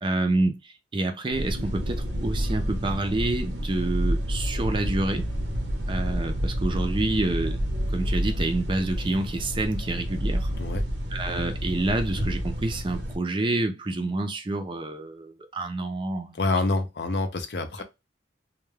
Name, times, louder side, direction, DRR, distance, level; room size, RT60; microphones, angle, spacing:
voice 1, 0.0-5.3 5.9-7.6 7.9-10.5 11.1-16.4 17.8-17.9, right 2 dB, 25° right, 0.4 m, -28 dB
sound 1, 1.3-13.2, equal, 70° right, 0.8 m, -29 dB
voice 2, 16.4-17.8, left 3 dB, 60° left, 0.5 m, -26 dB
2.2 x 2.2 x 3.1 m
head